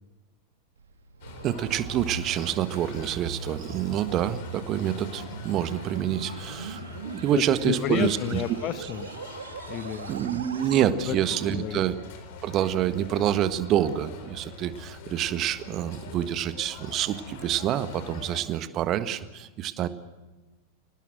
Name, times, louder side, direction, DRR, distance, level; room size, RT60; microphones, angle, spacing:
sound 1, 0.8-10.9, right 5 dB, 70° right, 2.2 m, -40 dB
sound 2, 1.2-18.4, left 5 dB, 50° left, 4.3 m, -44 dB
voice 1, 1.4-8.4 10.1-11.9 12.4-19.9, right 11 dB, 35° right, 12 dB, 1.5 m, -27 dB
voice 2, 7.3-9.1 9.7-10.1 11.1-11.2 11.4-11.8, left 11 dB, 35° left, 13 dB, 1.4 m, -30 dB
29.0 x 19.0 x 7.6 m, 1.2 s
figure-of-eight pair, 90°, 0 cm